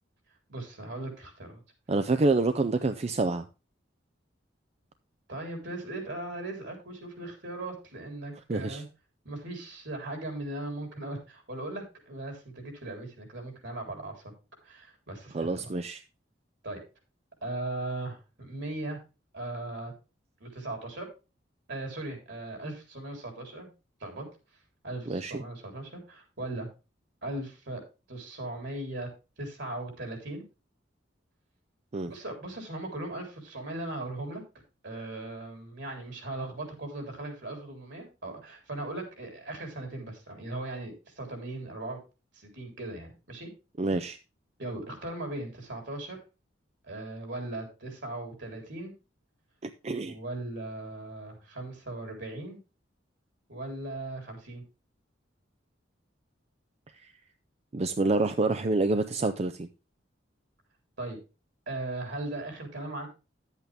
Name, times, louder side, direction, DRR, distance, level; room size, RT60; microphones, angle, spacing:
voice 1, 0.5-1.6 5.3-8.9 9.2-14.3 14.6-15.7 16.6-16.8 17.4-19.0 19.3-19.9 20.4-21.1 21.7-23.7 24.0-24.3 24.8-26.7 27.2-27.8 28.1-29.1 29.4-30.4 32.0-34.4 34.8-42.0 42.3-43.5 44.6-46.2 46.9-48.9 50.0-52.6 53.5-54.6 61.0-61.2 61.7-63.1, right 2 dB, 65° right, 3.8 m, -38 dB
voice 2, 1.9-3.4 8.5-8.8 15.3-16.0 25.1-25.4 31.9-32.1 43.8-44.2 49.6-50.2 57.7-59.7, right 3 dB, 35° right, 0.5 m, -27 dB
10.5 x 8.2 x 3.4 m
head